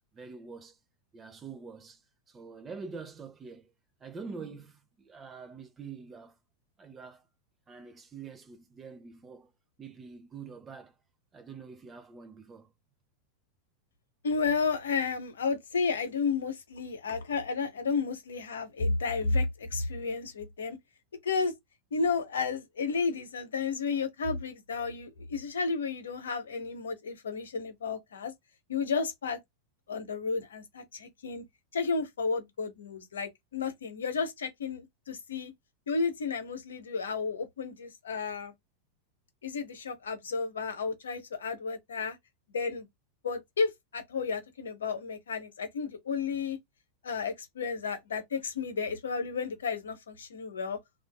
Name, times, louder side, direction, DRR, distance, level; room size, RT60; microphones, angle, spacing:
voice 1, 0.1-0.8 1.1-3.7 4.0-6.4 6.8-7.2 7.7-9.5 9.8-11.0 11.3-12.7, right 5 dB, 20° right, 0.6 m, -45 dB
voice 2, 14.2-20.8 21.2-21.5 21.9-28.3 28.7-29.4 29.9-31.4 31.7-35.5 35.9-38.5 39.4-42.2 42.5-42.9 43.2-46.6 47.0-50.8, left 4 dB, 65° left, 0.7 m, -32 dB
2.6 x 2.4 x 2.2 m
figure-of-eight pair, 90°, 0 cm